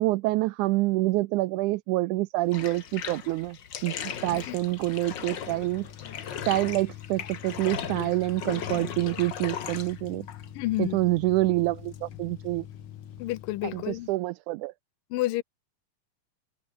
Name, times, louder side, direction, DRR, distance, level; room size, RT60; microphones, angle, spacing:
voice 1, 0.0-3.9 4.2-5.9 6.5-10.3 10.8-12.7 13.6-14.7, right 19 dB, 80° right, 1.8 m, -27 dB
Bathtub (filling or washing), 2.5-14.1, left 8 dB, 50° left, 1.5 m, -39 dB
sound 1, 4.3-14.1, left 10 dB, 70° left, 3.2 m, -46 dB
voice 2, 10.6-11.0 13.2-14.1 15.1-15.4, left 17 dB, 90° left, 2.5 m, -29 dB
open air
omnidirectional pair, 3.8 m